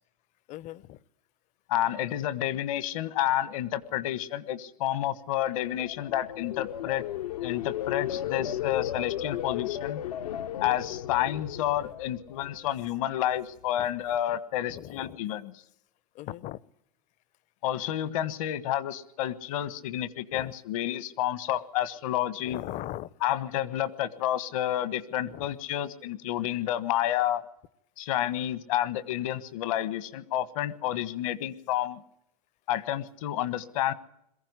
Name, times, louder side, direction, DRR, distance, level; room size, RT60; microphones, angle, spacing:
voice 1, 0.5-1.0 11.8-11.9 13.8-13.9 14.7-15.2 16.1-16.6 20.3-20.5 22.4-23.1 25.3-25.5, left 14 dB, 40° left, 23 dB, 0.8 m, -39 dB
voice 2, 1.7-7.0 7.4-10.0 10.6-15.5 17.6-22.6 23.2-27.4 28.0-32.0 32.7-33.9, left 12 dB, 65° left, 16 dB, 1.5 m, -30 dB
sound 1, 5.6-12.8 13.2-13.6, left 11 dB, 80° left, 1.1 m, -34 dB
22.0 x 15.0 x 9.7 m, 0.80 s
hypercardioid pair, 115°, 19 cm